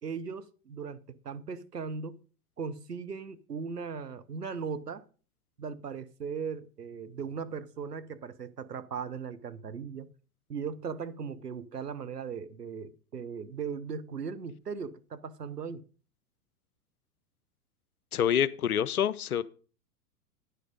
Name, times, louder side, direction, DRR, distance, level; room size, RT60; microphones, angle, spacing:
voice 1, 0.0-2.2 2.6-5.0 5.6-10.1 10.5-15.9, right 6 dB, 85° right, 0.8 m, -38 dB
voice 2, 18.1-19.4, left 9 dB, 70° left, 0.6 m, -27 dB
9.7 x 6.7 x 5.1 m
figure-of-eight pair, 100°, 46 cm